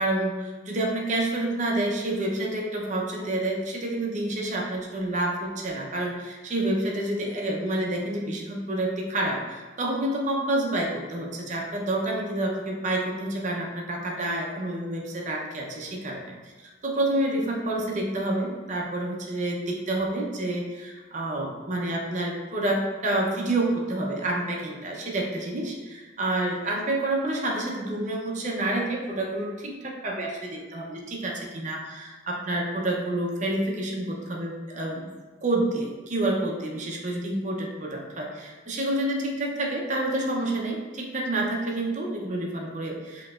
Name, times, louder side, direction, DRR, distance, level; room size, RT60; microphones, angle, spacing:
voice 1, 0.0-35.1 35.4-43.3, right 1 dB, 40° right, -1 dB, 0.6 m, -28 dB
5.6 x 2.9 x 2.4 m, 1.3 s
head